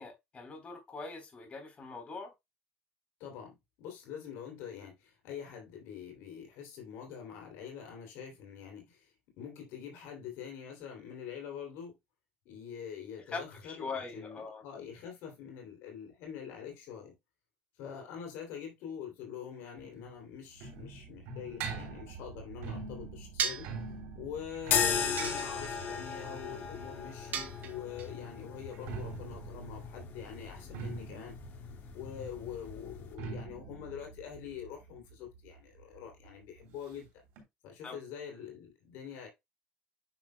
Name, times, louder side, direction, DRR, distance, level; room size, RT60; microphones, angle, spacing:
voice 1, 0.0-2.3 13.3-14.6 37.8-38.0, left 4 dB, 35° left, 3.5 m, -42 dB
voice 2, 3.2-11.9 12.4-17.1 17.8-23.7 24.1-31.4 31.9-37.2 37.6-39.3, left 8 dB, 80° left, 2.9 m, -45 dB
sound 1, 19.8-27.5 28.6-36.0 36.2-36.3 36.6-36.7 37.4-37.5, right 5 dB, 85° right, 2.9 m, -44 dB
sound 2, 23.4-23.8 25.2-25.9 27.3-28.1, right 7 dB, 50° right, 1.8 m, -35 dB
sound 3, 24.6-33.2, left 7 dB, 60° left, 1.8 m, -37 dB
9.2 x 6.0 x 2.2 m
supercardioid pair, 100°, 4 cm